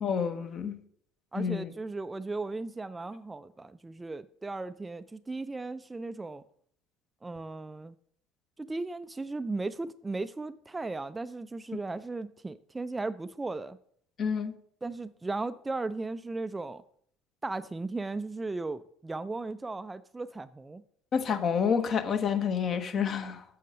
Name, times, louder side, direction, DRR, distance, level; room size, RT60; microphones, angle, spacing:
voice 1, 0.0-0.8 1.4-1.7 14.2-14.5 21.1-23.4, left 7 dB, 45° left, 1.0 m, -29 dB
voice 2, 1.3-6.4 7.2-7.9 8.6-13.8 14.8-16.8 17.4-20.8, right 3 dB, 15° right, 0.4 m, -36 dB
9.0 x 6.4 x 5.4 m
figure-of-eight pair, 65°, 0 cm